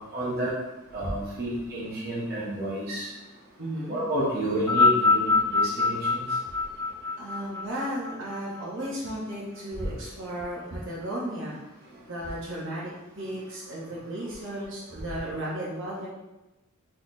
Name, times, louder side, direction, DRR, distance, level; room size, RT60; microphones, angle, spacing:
voice 1, 0.1-0.5 0.9-3.1 3.9-6.2, right 1 dB, 50° right, -6 dB, 1.2 m, -30 dB
voice 2, 3.6-4.0 7.2-11.5 12.0-16.1, right 1 dB, 65° right, -6 dB, 1.2 m, -34 dB
sound 1, 4.5-9.1 10.0-10.1, left 4 dB, 15° left, 0.7 m, -25 dB
4.2 x 3.1 x 4.0 m, 1.0 s
head